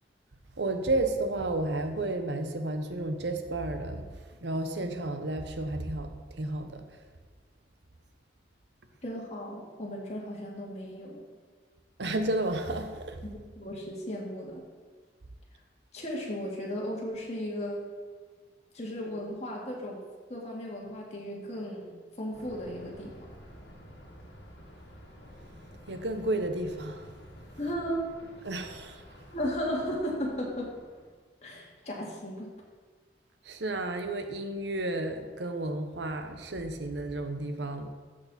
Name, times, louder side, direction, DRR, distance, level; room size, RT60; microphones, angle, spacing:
voice 1, 0.6-4.1 4.4-6.8 12.0-13.2 25.9-27.1 28.4-29.0 33.4-37.9, right 2 dB, 75° right, 7 dB, 0.9 m, -32 dB
voice 2, 9.0-11.3 13.3-14.7 15.9-17.8 18.7-20.0 20.3-23.1 27.6-28.1 29.3-30.7 31.4-32.5, equal, 40° left, -3 dB, 2.2 m, -35 dB
Thunder, 22.3-31.1, equal, 70° left, 1.8 m, -51 dB
14.0 x 6.6 x 4.3 m, 1.5 s
head